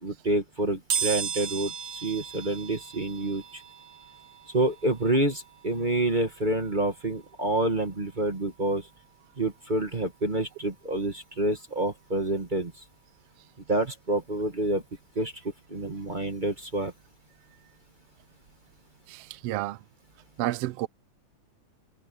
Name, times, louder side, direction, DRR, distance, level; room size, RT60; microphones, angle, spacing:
voice 1, 0.0-3.6 4.5-8.9 9.4-12.7 13.7-14.8 15.1-15.3 15.7-16.9, right 2 dB, 30° right, 0.8 m, -28 dB
sound 1, 0.9-11.6 12.0-12.1 13.3-13.4 13.7-15.8 16.1-18.7 19.1-19.3 19.6-19.7, right 7 dB, 60° right, 4.3 m, -38 dB
voice 2, 19.1-19.8 20.4-20.9, right 16 dB, 85° right, 1.3 m, -31 dB
omnidirectional pair, 3.6 m